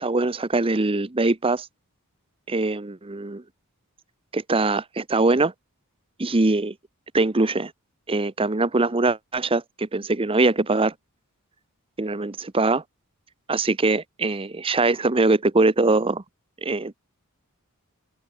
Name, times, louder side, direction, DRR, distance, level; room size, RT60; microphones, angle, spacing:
voice 1, 0.0-1.7 2.5-3.4 4.3-5.5 6.2-6.7 7.1-7.7 8.1-10.9 12.0-12.8 13.5-16.2 16.6-17.0, right 3 dB, 25° right, 0.8 m, -22 dB
open air
head